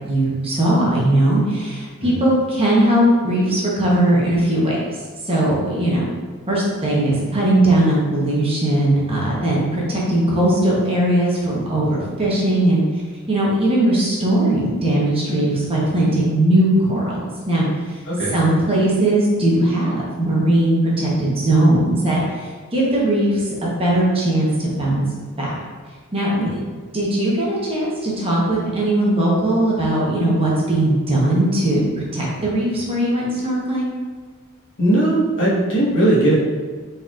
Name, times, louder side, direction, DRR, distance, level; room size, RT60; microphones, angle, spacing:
voice 1, 0.1-4.8 5.2-6.1 6.5-12.8 13.3-17.2 17.5-18.0 18.3-25.0 25.4-25.5 26.1-26.6 26.9-31.8 32.1-33.9, right 1 dB, 25° right, -5 dB, 0.9 m, -19 dB
voice 2, 34.8-36.3, right 1 dB, 60° left, -6 dB, 1.3 m, -18 dB
4.0 x 4.0 x 2.4 m, 1.5 s
head